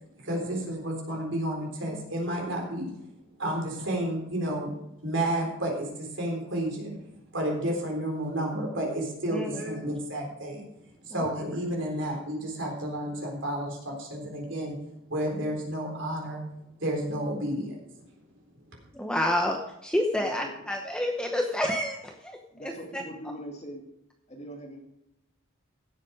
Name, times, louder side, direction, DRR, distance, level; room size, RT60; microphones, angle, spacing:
voice 1, 0.2-2.9 3.4-7.0 7.3-10.7 11.0-14.8 15.1-16.4 16.8-17.8, right 1 dB, 60° right, 0 dB, 4.0 m, -31 dB
voice 2, 18.9-19.6 19.8-22.4 22.9-23.0, left 1 dB, 5° left, 2 dB, 0.9 m, -28 dB
voice 3, 20.1-20.5 22.5-23.9 24.3-24.8, equal, 30° left, 0 dB, 2.5 m, -41 dB
16.0 x 7.5 x 4.8 m, 0.83 s
head